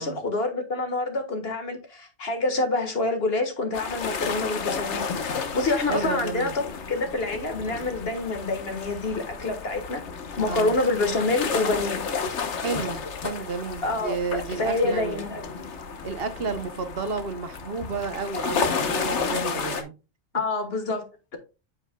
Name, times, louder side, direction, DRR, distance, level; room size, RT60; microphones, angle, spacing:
voice 1, 0.0-10.0 10.4-12.0 13.8-15.4 20.3-21.4, left 2 dB, 60° left, 1.7 m, -27 dB
sound 1, 3.7-19.8, left 5 dB, 85° left, 1.3 m, -32 dB
voice 2, 5.9-6.5 10.5-10.8 12.5-15.3 16.0-19.9, right 4 dB, 60° right, 1.1 m, -31 dB
8.2 x 7.1 x 2.2 m
omnidirectional pair, 1.1 m